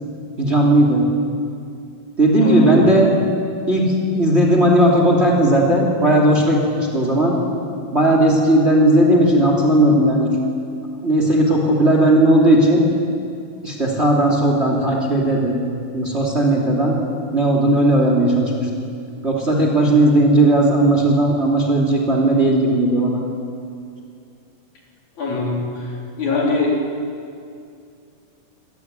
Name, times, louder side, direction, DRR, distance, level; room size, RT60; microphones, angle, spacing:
voice 1, 0.4-1.0 2.2-3.1 3.7-7.4 7.9-10.3 11.0-12.8 13.6-15.6 15.9-17.0 17.3-18.7 19.2-23.2, right 1 dB, 20° right, 0 dB, 2.9 m, -16 dB
voice 2, 2.4-2.9 25.2-25.9 26.2-26.8, left 3 dB, 65° left, -2 dB, 5.0 m, -21 dB
25.0 x 17.5 x 9.7 m, 2.4 s
omnidirectional pair, 3.7 m